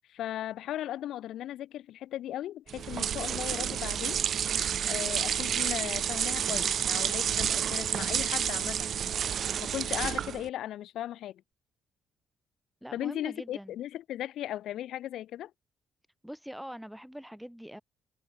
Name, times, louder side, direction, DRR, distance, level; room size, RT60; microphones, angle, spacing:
voice 1, 0.1-4.2 4.9-8.9 9.6-11.4 12.9-15.5, left 12 dB, 80° left, 1.4 m, -37 dB
sound 1, 2.7-10.5, right 8 dB, 60° right, 0.8 m, -30 dB
voice 2, 12.8-13.8 16.2-17.8, equal, ahead, 1.2 m, -43 dB
cardioid pair, 90°, 0 cm